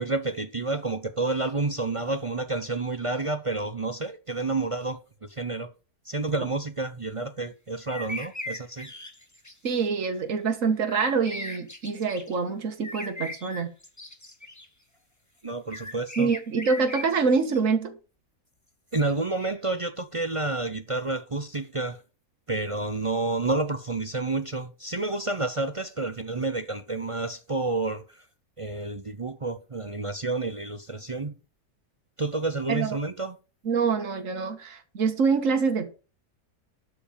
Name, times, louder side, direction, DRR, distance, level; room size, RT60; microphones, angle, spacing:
voice 1, 0.0-5.7 6.0-8.9 15.4-16.3 18.9-22.0 22.5-28.0 28.6-31.3 32.2-33.4, right 3 dB, 35° right, 0.5 m, -29 dB
sound 1, 7.9-9.5 10.8-12.4 12.8-14.7 15.7-17.6, left 2 dB, 10° left, 1.3 m, -38 dB
voice 2, 9.6-13.7 16.2-17.9 32.7-33.0 33.7-35.9, right 5 dB, 55° right, 1.9 m, -25 dB
12.0 x 4.9 x 6.8 m
omnidirectional pair, 1.6 m